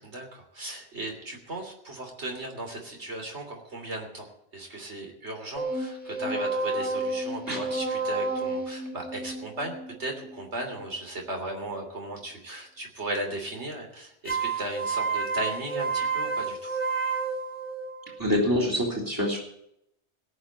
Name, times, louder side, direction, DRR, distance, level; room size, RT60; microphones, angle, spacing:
voice 1, 0.0-16.8, right 1 dB, 75° right, 2 dB, 3.4 m, -36 dB
sound 1, 5.6-10.9 14.3-18.2, right 3 dB, 10° left, 1.5 m, -31 dB
voice 2, 18.2-19.4, left 1 dB, 15° right, -2 dB, 3.5 m, -25 dB
17.5 x 6.6 x 8.6 m, 0.74 s
omnidirectional pair, 1.2 m